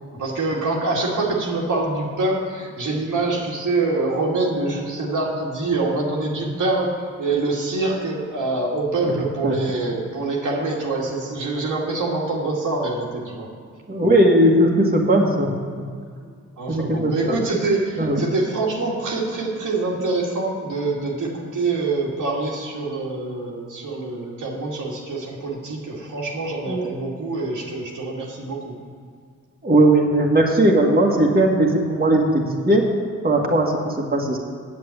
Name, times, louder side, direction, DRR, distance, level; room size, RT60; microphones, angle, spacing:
voice 1, 0.1-13.5 16.6-28.8, right 3 dB, 70° right, -3 dB, 2.1 m, -25 dB
voice 2, 13.9-15.5 16.7-17.4 18.0-18.2 26.7-26.9 29.6-32.9 33.2-34.4, right 1 dB, 30° right, -1 dB, 1.8 m, -18 dB
7.9 x 7.5 x 8.4 m, 2.1 s
supercardioid pair, 45°, 32 cm